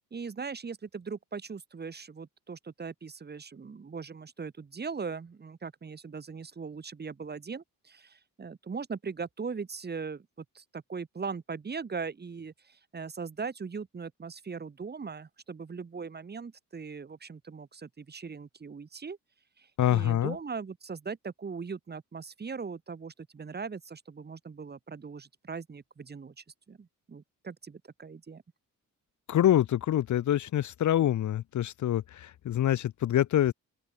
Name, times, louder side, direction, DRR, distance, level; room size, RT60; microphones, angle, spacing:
voice 1, 0.1-19.2 19.6-28.4, right 5 dB, 30° right, 1.7 m, -40 dB
voice 2, 19.8-20.3 29.3-33.5, left 11 dB, 60° left, 0.8 m, -26 dB
open air
cardioid pair, 120°, 33 cm